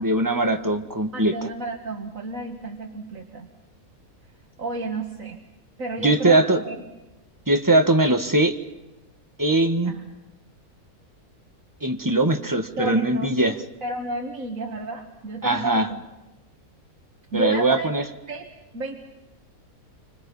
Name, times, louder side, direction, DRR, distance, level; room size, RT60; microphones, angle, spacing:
voice 1, 0.0-1.5 6.0-6.6 7.5-8.6 9.4-9.9 11.8-13.6 15.4-15.9 17.3-18.0, right 2 dB, 15° right, 5 dB, 1.5 m, -21 dB
voice 2, 1.1-3.5 4.6-5.4 5.8-6.8 9.8-10.1 12.8-13.3 13.8-16.0 17.3-17.9 18.3-18.5 18.7-19.0, right 2 dB, 60° right, 1 dB, 2.2 m, -31 dB
30.0 x 25.5 x 5.6 m, 1.0 s
omnidirectional pair, 1.6 m